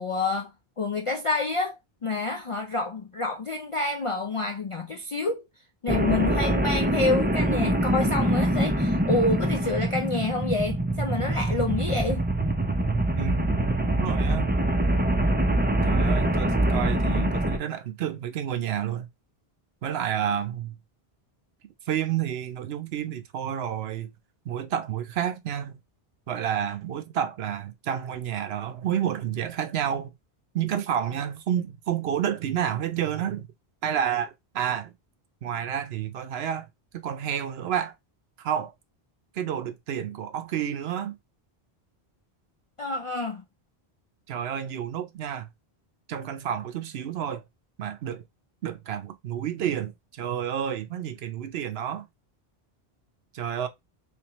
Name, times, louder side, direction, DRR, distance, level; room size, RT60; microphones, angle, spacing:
voice 1, 0.0-5.4 5.8-12.2 42.8-43.4, left 3 dB, 55° left, 0.3 m, -28 dB
sound 1, 5.9-17.6, right 1 dB, 15° right, 0.4 m, -24 dB
voice 2, 13.1-14.5 15.8-19.1 19.8-20.8 21.9-24.1 24.4-25.8 26.3-30.1 30.5-33.5 33.8-34.9 35.4-36.7 36.9-37.9 38.4-38.7 39.3-41.2 44.3-45.5 46.1-47.4 47.8-48.2 48.6-52.1 53.3-53.7, right 9 dB, 75° right, 0.9 m, -30 dB
3.5 x 3.5 x 2.9 m
omnidirectional pair, 1.1 m